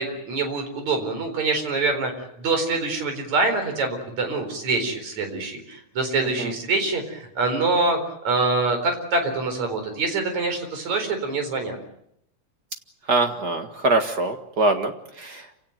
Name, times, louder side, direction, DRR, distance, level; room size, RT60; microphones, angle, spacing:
voice 1, 0.0-8.0 8.2-11.8, right 3 dB, 65° right, 6 dB, 5.6 m, -25 dB
voice 2, 13.1-15.6, right 2 dB, 40° right, 6 dB, 1.7 m, -23 dB
27.5 x 17.5 x 9.4 m, 0.75 s
omnidirectional pair, 3.5 m